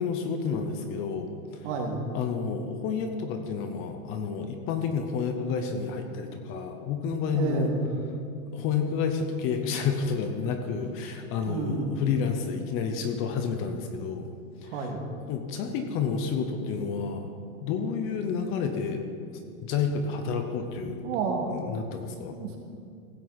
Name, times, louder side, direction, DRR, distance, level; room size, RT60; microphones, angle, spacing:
voice 1, 0.0-1.7 2.1-7.7 8.5-14.3 14.6-14.9 15.3-17.3 17.6-19.0 19.3-21.1 21.5-22.4, left 5 dB, 30° left, 6 dB, 0.7 m, -30 dB
voice 2, 1.6-2.0 7.3-7.8 11.5-11.9 14.7-15.0 21.0-21.5 22.3-22.6, right 4 dB, 55° right, 1 dB, 2.1 m, -30 dB
16.0 x 9.0 x 4.0 m, 2.4 s
supercardioid pair, 150°, 43 cm